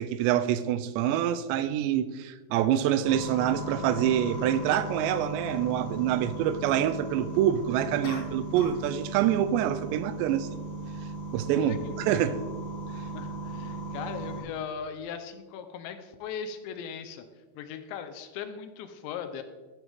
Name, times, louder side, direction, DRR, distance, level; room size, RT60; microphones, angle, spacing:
voice 1, 0.0-10.5 11.3-12.4, right 10 dB, 85° right, 2.7 m, -26 dB
sound 1, 3.0-14.4, right 2 dB, 65° right, 4.3 m, -37 dB
sound 2, 8.0-8.9 9.2-9.5, left 5 dB, 65° left, 2.9 m, -42 dB
voice 2, 11.5-12.4 13.1-17.3 17.5-19.4, left 7 dB, 80° left, 3.0 m, -39 dB
14.5 x 8.0 x 3.6 m
omnidirectional pair, 5.1 m